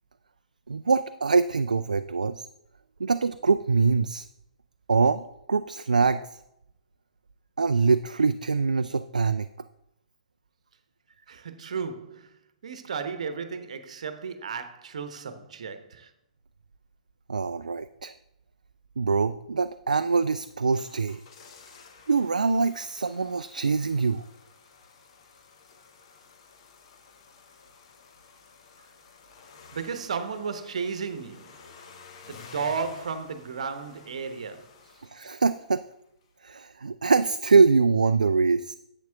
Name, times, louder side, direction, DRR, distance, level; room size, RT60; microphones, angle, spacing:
voice 1, 0.7-2.5 3.0-4.3 4.9-6.3 7.6-9.5 17.3-18.1 19.0-21.2 22.1-24.2 35.0-35.8 36.4-38.7, right 4 dB, 70° right, 0.3 m, -24 dB
voice 2, 11.3-12.4 12.6-16.1 29.7-31.6 32.2-34.7, right 5 dB, 55° right, 1.0 m, -34 dB
sound 1, 20.4-35.9 36.2-36.3, left 5 dB, 45° left, 1.2 m, -53 dB
10.5 x 8.1 x 3.5 m
figure-of-eight pair, 120°, 4 cm